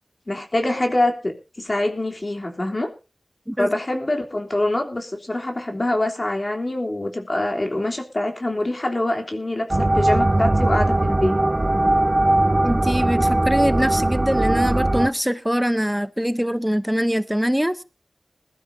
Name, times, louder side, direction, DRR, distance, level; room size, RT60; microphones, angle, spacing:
voice 1, 0.3-2.9 3.6-11.4, left 1 dB, 40° left, 3.3 m, -24 dB
sound 1, 9.7-15.1, right 1 dB, 35° right, 0.7 m, -19 dB
voice 2, 12.6-17.8, equal, 5° right, 0.9 m, -23 dB
21.0 x 12.5 x 2.7 m
wide cardioid pair, 60°, 0 cm